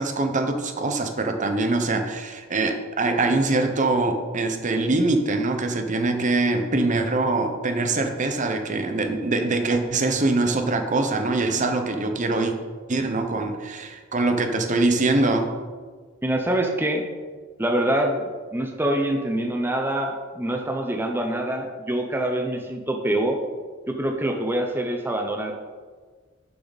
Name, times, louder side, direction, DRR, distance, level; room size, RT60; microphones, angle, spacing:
voice 1, 0.0-12.5 12.9-15.5, right 2 dB, 40° right, 6 dB, 0.9 m, -23 dB
voice 2, 16.2-17.1 17.6-23.4 23.9-25.5, right 1 dB, 10° right, 2 dB, 0.8 m, -25 dB
11.5 x 7.1 x 4.1 m, 1.5 s
head